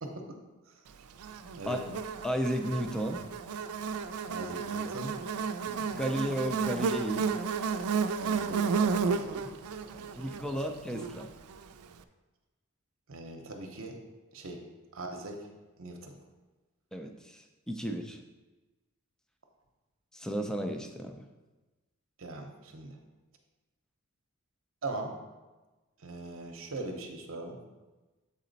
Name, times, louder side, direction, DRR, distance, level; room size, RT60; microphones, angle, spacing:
voice 1, 0.0-0.4 1.6-1.8 4.3-5.1 8.2-9.5 9.9-10.4 13.1-14.0 14.3-14.6 14.9-15.5 15.8-16.2 22.2-23.0 24.8-25.2 26.0-27.6, right 2 dB, 65° right, 2 dB, 0.8 m, -41 dB
Buzz, 1.2-11.6, right 5 dB, 90° right, 0.4 m, -32 dB
voice 2, 2.2-3.2 5.6-7.3 10.1-11.3 16.9-18.2 20.1-21.2, equal, 5° left, 4 dB, 0.4 m, -33 dB
7.5 x 4.2 x 4.0 m, 1.2 s
head